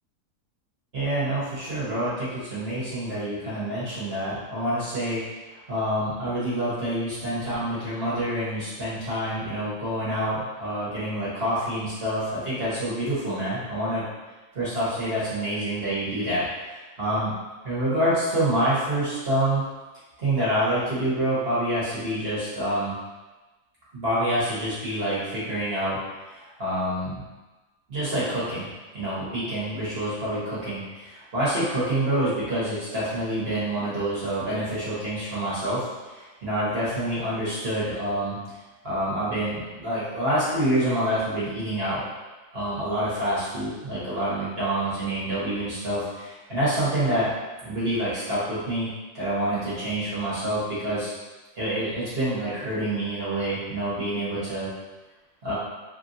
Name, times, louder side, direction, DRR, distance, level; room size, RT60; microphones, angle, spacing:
voice 1, 0.9-5.2 5.7-14.0 14.5-16.4 17.0-17.3 17.6-19.6 20.2-23.0 23.9-26.0 26.4-27.2 27.9-28.7 28.9-38.4 38.8-42.0 42.5-47.3 47.6-48.9 49.1-51.1 51.6-54.7 55.4-55.5, right 1 dB, 40° right, -10 dB, 1.1 m, -27 dB
3.1 x 2.6 x 2.6 m, 1.2 s
omnidirectional pair, 1.7 m